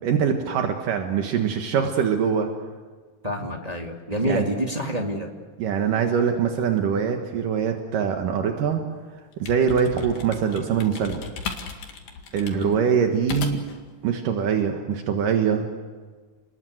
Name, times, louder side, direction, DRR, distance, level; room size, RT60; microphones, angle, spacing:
voice 1, 0.0-2.5 4.2-4.4 5.6-8.8 9.4-11.2 12.3-13.6 14.0-15.7, right 7 dB, 75° right, 4 dB, 3.1 m, -23 dB
voice 2, 3.2-5.3 12.5-12.8, equal, 15° right, 1 dB, 1.6 m, -27 dB
sound 1, 9.2-13.8, left 6 dB, 75° left, 3.7 m, -37 dB
29.5 x 20.5 x 7.9 m, 1.4 s
omnidirectional pair, 3.9 m